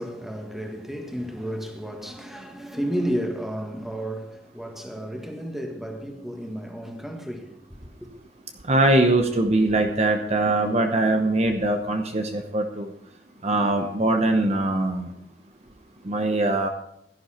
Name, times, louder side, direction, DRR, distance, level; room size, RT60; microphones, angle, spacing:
voice 1, 0.0-7.6 8.0-8.1, equal, ahead, 1.6 m, -32 dB
voice 2, 8.7-12.9 13.4-15.1 16.1-16.7, right 2 dB, 40° right, 0.9 m, -22 dB
16.5 x 11.0 x 4.4 m
head